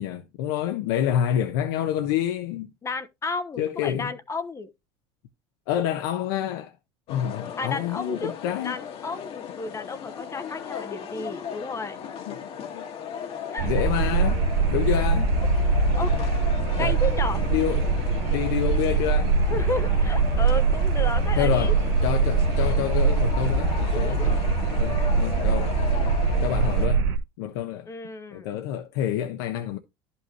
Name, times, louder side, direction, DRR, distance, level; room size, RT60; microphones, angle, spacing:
voice 1, 0.0-2.7 3.6-4.1 5.7-6.7 7.1-8.8 12.3-12.9 13.6-14.4 14.7-15.3 16.8-17.0 17.4-18.0 18.3-19.4 21.4-24.4 24.8-25.7 26.4-27.1 27.4-27.9 28.3-29.8, left 10 dB, 75° left, 1.0 m, -28 dB
voice 2, 2.8-4.7 7.6-8.4 8.6-12.0 13.5-13.7 16.0-16.1 16.8-17.4 19.5-21.7 23.9-24.3 25.0-25.1 27.9-28.6, left 3 dB, 20° left, 0.8 m, -32 dB
sound 1, 7.1-26.9, left 7 dB, 45° left, 1.5 m, -37 dB
sound 2, 13.6-27.2, right 4 dB, 80° right, 1.3 m, -23 dB
11.0 x 5.7 x 2.9 m
supercardioid pair, 110°, 13 cm